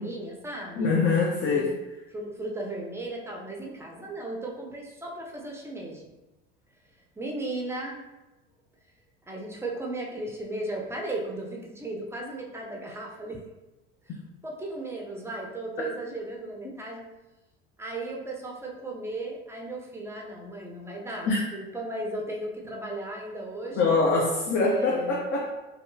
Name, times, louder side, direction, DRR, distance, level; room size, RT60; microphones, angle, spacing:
voice 1, 0.0-1.0 1.5-1.8 2.1-6.1 7.2-8.0 9.3-13.4 14.0-17.0 17.8-24.0 24.5-25.3, right 2 dB, 10° right, -1 dB, 0.5 m, -36 dB
voice 2, 0.8-1.7 21.3-21.4 23.7-25.5, left 3 dB, 40° left, -2 dB, 0.5 m, -24 dB
2.7 x 2.3 x 2.6 m, 1.0 s
hypercardioid pair, 85°, 30 cm